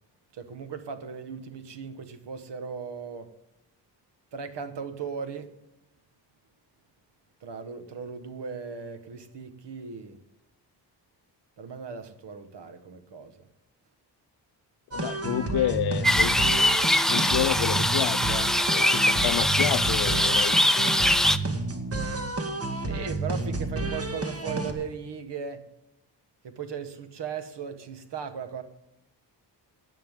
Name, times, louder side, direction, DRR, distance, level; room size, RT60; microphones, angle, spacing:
voice 1, 0.3-3.3 4.3-5.5 7.4-10.2 11.6-13.5 22.8-25.6 26.4-28.6, right 6 dB, 70° right, 1.5 m, -37 dB
voice 2, 14.9-16.4 16.9-20.6, left 12 dB, 65° left, 0.5 m, -30 dB
sound 1, 14.9-24.7, right 2 dB, 35° right, 1.8 m, -31 dB
sound 2, 16.0-21.4, left 1 dB, ahead, 0.5 m, -23 dB
16.5 x 10.0 x 3.7 m
cardioid pair, 110°, 42 cm